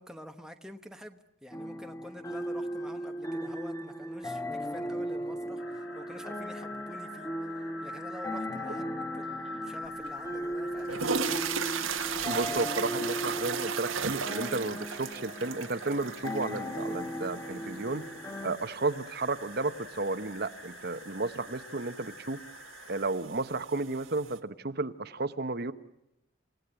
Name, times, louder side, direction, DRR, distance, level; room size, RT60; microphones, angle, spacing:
voice 1, 0.0-11.4, equal, 5° right, 5 dB, 1.0 m, -48 dB
sound 1, 1.5-18.6, equal, 15° left, 1.2 m, -37 dB
sound 2, 5.6-23.1, left 2 dB, 80° left, 4.8 m, -45 dB
sound 3, 10.0-10.1 10.7-24.4, right 6 dB, 90° right, 1.5 m, -37 dB
voice 2, 12.3-18.0 18.4-22.4 22.9-25.7, right 3 dB, 50° right, 11 dB, 1.0 m, -33 dB
29.5 x 17.5 x 9.0 m, 0.84 s
head